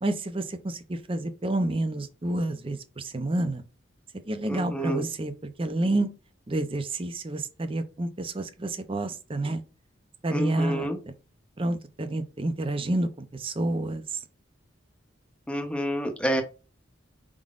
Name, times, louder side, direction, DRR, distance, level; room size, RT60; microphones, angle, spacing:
voice 1, 0.0-3.6 4.3-6.1 6.5-9.6 10.2-10.9 11.6-14.2, right 2 dB, 30° right, 0.6 m, -29 dB
voice 2, 4.5-5.1 10.3-11.0 15.5-16.4, equal, 5° left, 0.8 m, -28 dB
4.8 x 3.7 x 2.5 m
head